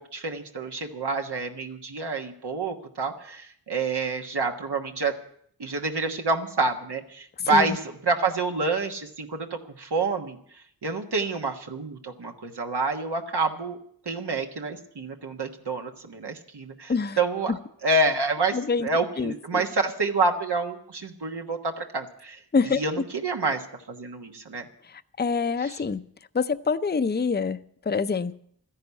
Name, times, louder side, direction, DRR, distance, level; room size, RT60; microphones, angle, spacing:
voice 1, 0.0-5.2 5.6-13.8 14.0-17.5 17.8-24.6 25.6-25.8, right 3 dB, 80° right, 3 dB, 1.4 m, -28 dB
voice 2, 18.5-18.9 19.2-19.6 22.5-22.8 24.8-26.0 26.3-28.3, left 5 dB, 25° left, 12 dB, 0.6 m, -26 dB
13.0 x 10.5 x 8.2 m, 0.65 s
wide cardioid pair, 50°, 39 cm